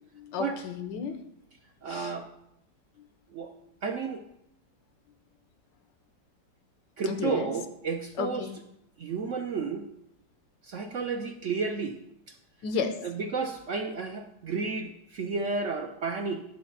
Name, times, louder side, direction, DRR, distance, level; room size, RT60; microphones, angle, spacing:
voice 1, 0.1-1.2 1.9-2.1 3.0-3.1 7.1-7.5 8.2-8.6 12.6-13.0, left 6 dB, 85° left, 8 dB, 1.6 m, -33 dB
voice 2, 1.8-2.3 3.3-3.5 3.8-4.3 7.0-8.5 9.0-9.9 10.6-12.0 12.3-12.4 13.0-16.4, right 4 dB, 60° right, 5 dB, 0.8 m, -32 dB
11.0 x 4.1 x 7.0 m, 0.75 s
omnidirectional pair, 1.9 m